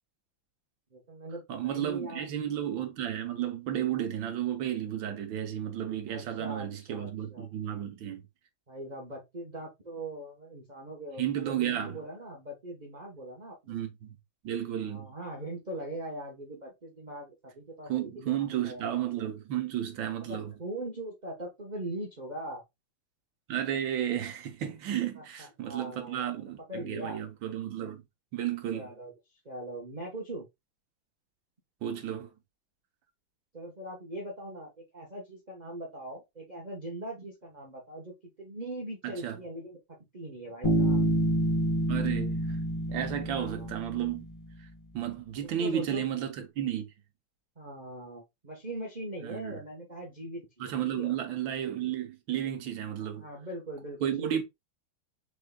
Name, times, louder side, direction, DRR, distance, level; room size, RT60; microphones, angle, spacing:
voice 1, 0.9-2.3 6.1-7.5 8.7-13.8 14.8-18.9 20.2-22.6 25.2-27.2 28.7-29.1 29.4-30.4 33.5-39.8 40.1-41.1 43.3-43.8 45.4-46.0 47.6-51.1 53.0-54.4, right 1 dB, 30° right, 0.9 m, -41 dB
voice 2, 1.5-8.2 11.2-12.0 13.7-14.1 14.4-15.1 17.9-20.5 23.5-28.0 28.3-28.9 31.8-32.3 39.0-39.4 41.9-42.6 42.9-44.3 44.9-46.8 49.2-49.6 50.6-53.2 54.0-54.4, right 10 dB, 75° right, 1.6 m, -33 dB
Bass guitar, 40.6-44.3, right 1 dB, 25° left, 0.8 m, -28 dB
5.0 x 3.9 x 2.2 m
omnidirectional pair, 2.2 m